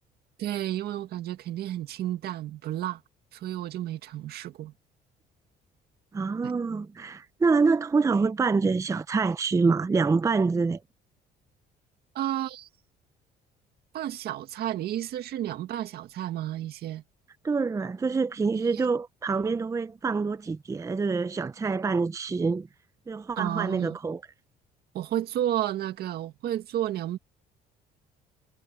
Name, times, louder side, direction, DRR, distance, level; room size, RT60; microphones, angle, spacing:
voice 1, 0.4-3.0 3.3-4.7 6.4-6.5 12.1-12.7 13.9-17.0 18.7-18.8 23.4-24.0 24.9-27.2, right 12 dB, 70° right, 2.0 m, -31 dB
voice 2, 6.1-10.8 17.4-22.7 23.1-24.2, right 4 dB, 20° right, 0.6 m, -26 dB
cardioid pair, 110°, 17 cm